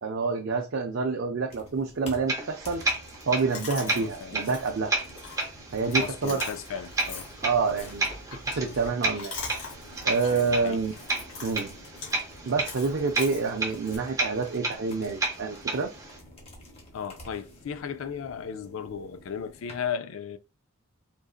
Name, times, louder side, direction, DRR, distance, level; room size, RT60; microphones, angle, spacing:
voice 1, 0.0-2.8 3.3-5.0 5.7-6.4 7.4-8.0 8.5-9.3 10.0-11.0 11.4-11.7 12.5-15.9, right 4 dB, 55° right, 0.5 m, -28 dB
sound 1, 1.5-19.9, left 1 dB, 30° left, 0.9 m, -49 dB
sound 2, 2.3-16.2, right 2 dB, 15° right, 0.7 m, -33 dB
Chewing mastication, 3.5-14.0, left 4 dB, 85° left, 1.7 m, -43 dB
voice 2, 3.8-4.4 6.0-7.3 8.6-8.8 10.3-10.8 16.9-20.4, left 7 dB, 65° left, 0.4 m, -36 dB
3.8 x 2.6 x 2.4 m
head